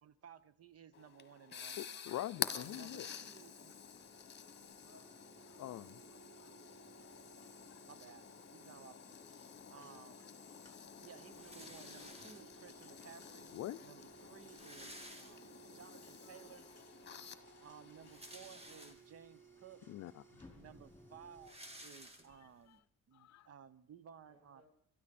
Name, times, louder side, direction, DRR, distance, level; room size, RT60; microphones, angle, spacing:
voice 1, 0.0-2.0 2.5-3.8 7.9-8.3 8.5-9.2 9.7-10.3 11.0-13.5 13.8-16.7 17.6-19.8 20.5-22.8 23.1-24.7, right 8 dB, 50° right, 0.9 m, -57 dB
sound 1, 0.9-18.9, left 7 dB, 35° left, 1.2 m, -49 dB
voice 2, 1.8-3.1 5.6-6.0 13.5-13.8 17.3-17.4 19.9-20.5 23.1-23.5, left 13 dB, 60° left, 0.5 m, -44 dB
sound 2, 2.3-21.5, right 4 dB, 10° left, 4.2 m, -62 dB
voice 3, 4.5-6.2 24.3-24.7, equal, 75° right, 7.0 m, -68 dB
sound 3, 11.3-12.7 13.6-13.7 13.9-14.0 14.3-15.8 16.3-16.4 17.8-19.3 19.9-20.0 20.3-22.7, right 1 dB, 20° right, 2.0 m, -55 dB
22.5 x 13.0 x 4.2 m
cardioid pair, 90°, 30 cm